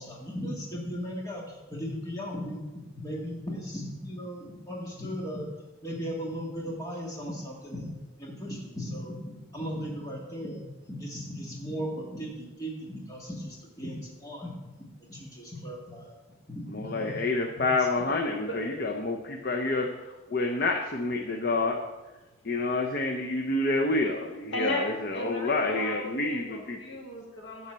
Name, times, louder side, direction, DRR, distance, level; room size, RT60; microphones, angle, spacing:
voice 1, 0.0-2.6 2.9-5.5 5.8-7.9 8.2-9.2 9.5-14.5 15.1-16.1 16.5-17.4 17.9-18.0, equal, 15° left, -3 dB, 1.8 m, -37 dB
voice 2, 16.7-21.8 22.4-26.8, left 2 dB, 50° left, 2 dB, 0.7 m, -28 dB
voice 3, 18.3-18.7 24.5-27.7, left 1 dB, 65° left, 0 dB, 2.0 m, -36 dB
11.0 x 4.3 x 7.4 m, 1.1 s
head